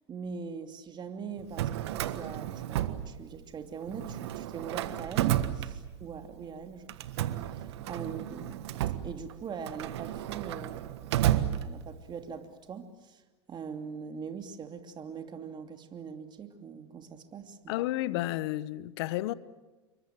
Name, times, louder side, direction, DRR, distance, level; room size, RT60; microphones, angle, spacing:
voice 1, 0.1-8.8 9.0-13.2 13.5-17.7, right 6 dB, 30° right, 2.8 m, -42 dB
Drawer open or close, 1.4-3.6 3.9-6.3 6.9-12.2, right 12 dB, 70° right, 1.5 m, -32 dB
voice 2, 17.7-19.3, left 16 dB, 65° left, 1.0 m, -31 dB
28.0 x 23.5 x 7.7 m
hypercardioid pair, 90°, 14 cm